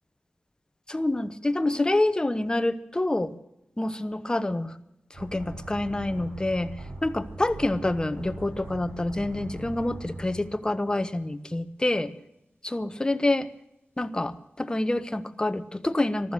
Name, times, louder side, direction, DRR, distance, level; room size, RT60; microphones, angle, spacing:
voice 1, 0.9-3.3 3.8-4.7 5.2-6.7 7.0-12.1 12.6-13.5 14.0-16.3, left 2 dB, 20° left, 11 dB, 0.9 m, -27 dB
sound 1, 5.1-11.2 11.5-11.6, right 2 dB, 70° right, 6.8 m, -41 dB
15.0 x 12.0 x 7.9 m, 0.87 s
wide cardioid pair, 70°, 4 cm